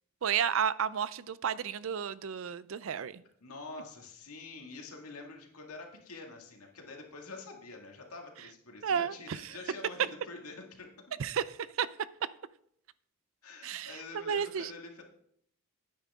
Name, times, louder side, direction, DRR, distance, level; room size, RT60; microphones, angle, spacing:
voice 1, 0.2-3.2 8.8-9.6 11.2-11.9 13.6-14.7, right 8 dB, 60° right, 0.4 m, -32 dB
voice 2, 3.4-10.9 13.4-15.0, left 3 dB, 80° left, 2.1 m, -46 dB
10.5 x 9.3 x 3.6 m
head